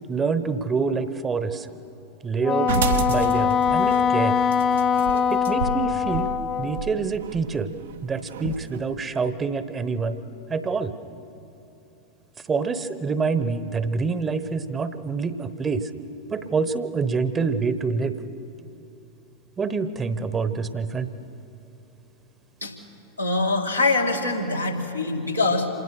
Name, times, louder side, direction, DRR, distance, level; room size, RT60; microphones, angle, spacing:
voice 1, 0.1-1.7 2.2-2.7 3.1-4.4 5.3-6.3 6.6-7.7 8.0-10.2 10.5-10.9 12.5-15.9 16.3-18.2 19.6-21.1, right 5 dB, 20° right, 12 dB, 1.0 m, -26 dB
Wind instrument woodwind instrument, 2.4-6.9, left 7 dB, 30° left, 0.6 m, -22 dB
sound 1, 2.7-8.8, right 6 dB, 60° right, 0.9 m, -30 dB
voice 2, 23.2-25.7, left 3 dB, 90° left, -1 dB, 2.5 m, -24 dB
27.0 x 19.5 x 6.5 m, 2.8 s
figure-of-eight pair, 90°, 0 cm